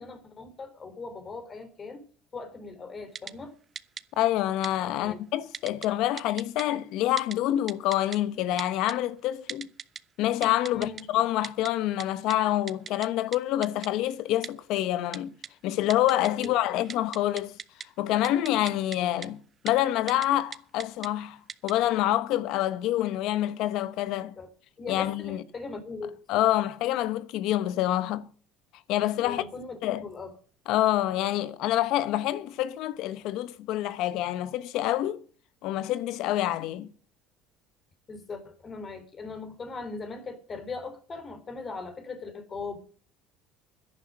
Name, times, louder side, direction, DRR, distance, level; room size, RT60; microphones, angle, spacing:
voice 1, 0.0-2.0 2.3-3.5 5.0-5.2 10.7-11.0 16.4-16.5 24.4-24.5 24.8-26.2 29.2-30.3 38.1-42.8, left 4 dB, 30° left, 3.7 m, -39 dB
Typing, 3.2-3.3 3.8-4.0 4.6-4.7 5.5-5.9 6.2-6.6 7.2-7.4 7.7-8.2 8.6-8.9 9.5-10.0 10.4-11.0 11.4-11.7 12.0-12.1 12.3-12.4 12.7-13.1 13.3-13.4 13.6-13.9 14.4-14.5 15.1-15.5 15.9-16.5 16.8-17.9 18.2-19.0 19.2-19.3 19.7-19.8 20.1-20.3 20.5-21.1 21.5-21.7, right 7 dB, 35° right, 0.7 m, -37 dB
voice 2, 4.2-9.7 10.2-15.3 15.6-17.5 18.0-21.4 21.6-24.4 24.9-25.4 26.3-28.3 28.9-29.4 29.8-30.1 30.7-35.2 35.6-36.9, left 13 dB, 65° left, 1.0 m, -27 dB
11.5 x 10.5 x 6.5 m
supercardioid pair, 115°, 0 cm